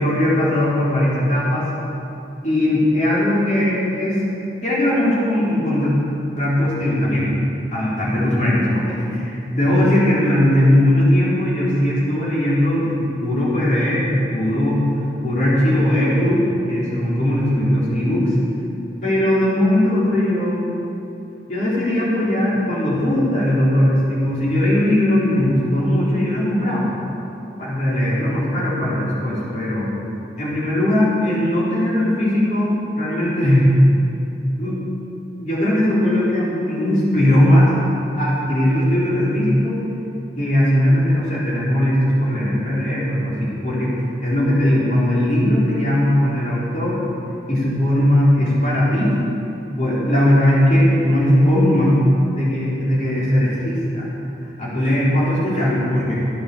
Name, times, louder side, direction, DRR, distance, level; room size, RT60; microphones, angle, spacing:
voice 1, 0.0-1.7 2.4-4.2 4.6-5.9 6.4-7.3 7.7-14.8 15.2-18.2 19.0-20.7 21.5-26.9 27.6-29.9 30.4-33.7 34.6-34.8 35.4-37.7 38.2-39.8 40.4-43.9 44.2-47.0 47.5-49.1 49.8-54.1 54.6-56.2, left 1 dB, 40° left, -8 dB, 4.1 m, -19 dB
15.5 x 8.6 x 7.1 m, 2.9 s
head